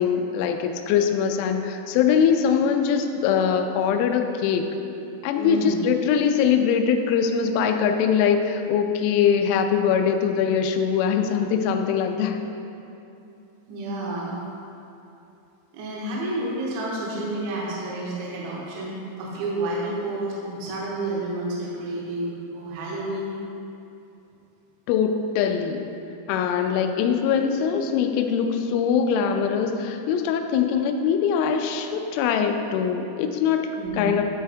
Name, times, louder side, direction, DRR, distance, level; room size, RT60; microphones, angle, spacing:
voice 1, 0.0-4.6 5.2-12.4 24.9-25.8 26.3-33.7 33.9-34.2, left 7 dB, 85° left, 5 dB, 2.9 m, -22 dB
voice 2, 5.4-5.8 13.7-14.3 15.7-23.3 33.8-34.1, right 2 dB, 75° right, -5 dB, 3.2 m, -30 dB
12.0 x 4.5 x 3.4 m, 2.8 s
omnidirectional pair, 5.7 m